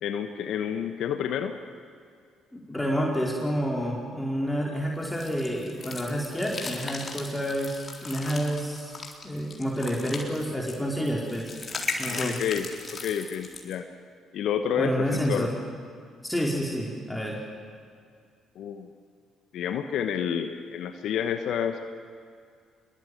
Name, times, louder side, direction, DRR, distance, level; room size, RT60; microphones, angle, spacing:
voice 1, 0.0-1.6 12.1-12.7 13.0-13.8 14.3-15.5 18.5-18.9 19.5-21.8, left 8 dB, 60° left, 7 dB, 1.2 m, -29 dB
voice 2, 2.5-9.0 9.2-11.5 12.0-12.4 14.8-15.6 16.2-17.4, equal, 5° left, -3 dB, 4.6 m, -29 dB
sound 1, 5.1-13.8, left 3 dB, 40° left, 4.0 m, -37 dB
26.5 x 22.5 x 8.0 m, 2.2 s
hypercardioid pair, 45°, 0 cm